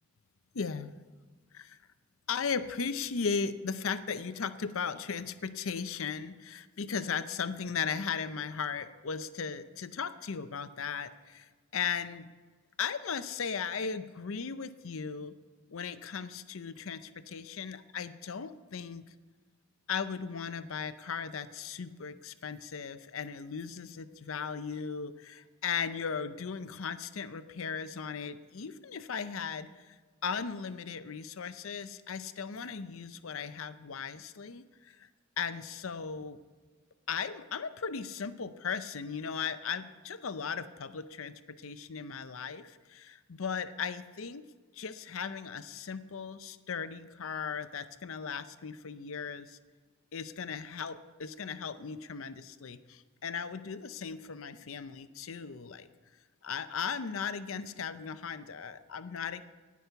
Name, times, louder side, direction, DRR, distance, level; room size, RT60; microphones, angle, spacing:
voice 1, 0.5-1.0 1.5-1.8 2.3-12.3 12.8-15.4 15.7-19.0 19.9-30.0 30.2-35.1 35.4-36.4 37.1-44.4 44.7-49.6 50.1-55.9 56.4-59.4, left 6 dB, 70° left, 12 dB, 0.6 m, -37 dB
17.5 x 6.2 x 6.9 m, 1.4 s
head